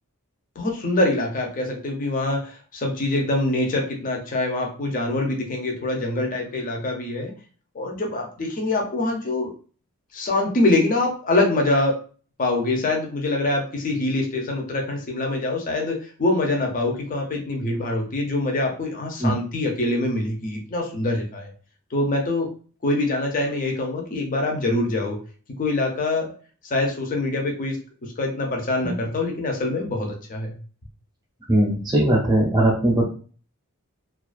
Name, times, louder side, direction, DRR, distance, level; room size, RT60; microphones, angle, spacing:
voice 1, 0.6-7.3 7.7-9.5 10.1-12.0 12.4-21.5 21.9-22.5 22.8-25.2 25.6-26.3 26.6-30.6, left 2 dB, 40° left, 1 dB, 0.5 m, -24 dB
voice 2, 31.5-33.0, right 1 dB, 20° right, -1 dB, 0.6 m, -19 dB
2.4 x 2.3 x 2.4 m, 0.40 s
head